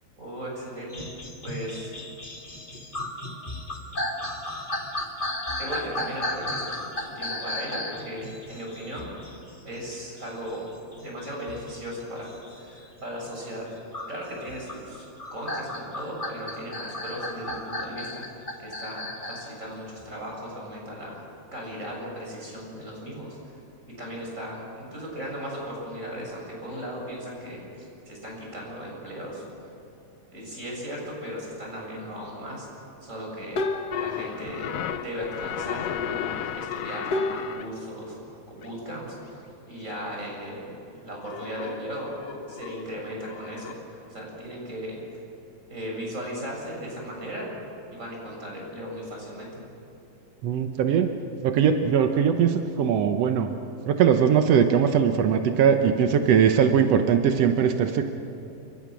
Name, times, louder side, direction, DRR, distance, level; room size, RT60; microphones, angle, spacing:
voice 1, 0.2-1.9 5.6-9.1 9.6-10.7 10.9-13.7 14.1-15.0 15.3-18.3 18.6-21.2 21.5-23.6 24.0-29.4 30.3-32.7 33.0-33.6 34.0-42.1 42.5-45.0 45.7-47.5 47.9-49.6, equal, 20° right, -2 dB, 7.2 m, -37 dB
sound 1, 0.9-13.3 13.9-19.5 20.0-20.1, left 1 dB, 25° left, 1.2 m, -34 dB
sound 2, 33.5-35.7 37.1-40.5 40.9-41.1 41.9-43.4 43.7-44.1, left 2 dB, 55° left, 1.1 m, -36 dB
sound 3, 33.9-37.7 38.6-38.7 39.3-39.4 41.3-43.7, left 9 dB, 80° left, 1.4 m, -34 dB
voice 2, 50.4-51.1 51.4-53.5 53.9-58.1, right 7 dB, 75° right, 6 dB, 1.4 m, -21 dB
29.0 x 24.5 x 6.3 m, 2.9 s
omnidirectional pair, 4.3 m